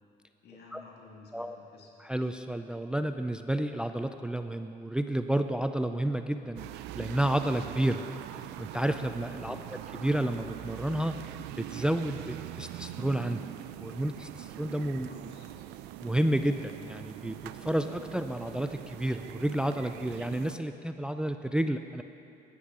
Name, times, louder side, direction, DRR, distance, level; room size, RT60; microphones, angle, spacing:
voice 1, 0.4-1.9 9.4-9.8 15.0-15.6, left 4 dB, 75° left, -1 dB, 2.2 m, -53 dB
voice 2, 2.0-8.0 8.6-9.6 10.0-11.2 11.6-13.4 13.8-15.1 16.0-22.0, right 1 dB, 5° right, 8 dB, 0.3 m, -31 dB
sound 1, 6.6-20.6, right 13 dB, 90° right, 0.4 m, -43 dB
9.8 x 9.6 x 5.9 m, 2.6 s
cardioid pair, 110°, 17 cm